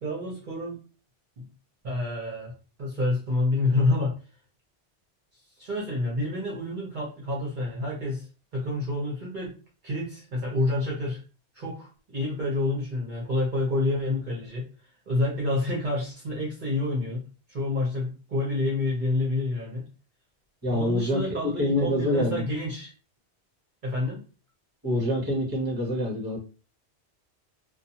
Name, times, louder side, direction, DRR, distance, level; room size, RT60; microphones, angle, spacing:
voice 1, 0.0-0.8 1.4-1.5 1.8-2.5 2.8-4.1 5.6-8.3 8.5-9.6 9.8-11.2 11.5-14.7 15.1-17.2 17.5-19.8 20.7-22.9 23.8-24.2, left 2 dB, 50° right, -4 dB, 0.9 m, -28 dB
voice 2, 20.6-22.4 24.8-26.4, left 1 dB, 20° right, -2 dB, 1.0 m, -26 dB
2.5 x 2.4 x 2.7 m, 0.35 s
omnidirectional pair, 1.1 m